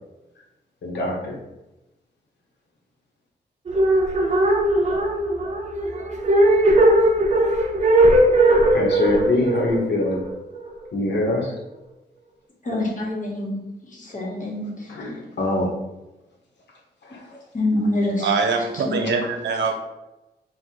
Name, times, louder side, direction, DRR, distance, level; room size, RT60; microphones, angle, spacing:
voice 1, 0.8-1.4 8.7-10.2 10.9-11.5 14.9-15.7 17.0-17.2, left 2 dB, 75° left, -2 dB, 1.2 m, -23 dB
sound 1, 3.7-10.8, right 1 dB, 40° right, 0.6 m, -19 dB
voice 2, 12.6-13.6 13.8-14.9 17.5-18.3 18.7-18.9, left 1 dB, 45° left, -2 dB, 1.4 m, -26 dB
voice 3, 18.2-19.7, right 4 dB, 80° right, 4 dB, 0.6 m, -23 dB
3.7 x 2.5 x 4.5 m, 1.0 s
cardioid pair, 80°, 18 cm